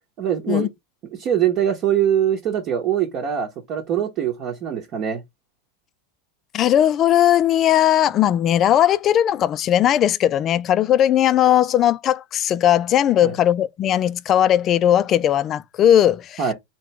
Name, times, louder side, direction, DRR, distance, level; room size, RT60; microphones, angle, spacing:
voice 1, 0.2-0.7 1.1-5.2 13.2-13.3 16.4-16.5, right 9 dB, 40° right, 1.0 m, -23 dB
voice 2, 6.5-16.5, left 11 dB, 30° left, 0.4 m, -18 dB
3.7 x 2.9 x 3.3 m
supercardioid pair, 140°, 0 cm